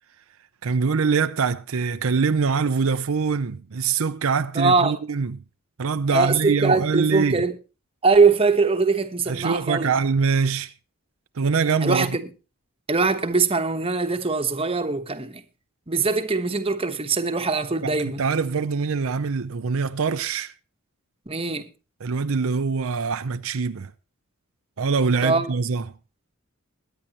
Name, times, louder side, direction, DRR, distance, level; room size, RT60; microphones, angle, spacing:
voice 1, 0.6-5.4 5.8-7.5 9.3-10.7 11.4-12.2 17.8-20.5 22.0-23.9 24.8-25.8, right 5 dB, 75° right, 0.6 m, -24 dB
voice 2, 4.5-5.0 6.1-7.5 8.0-9.9 11.8-12.2 12.9-15.4 15.9-18.2 21.3-21.7 25.2-25.5, right 4 dB, 25° right, 1.1 m, -22 dB
22.0 x 10.0 x 2.9 m
head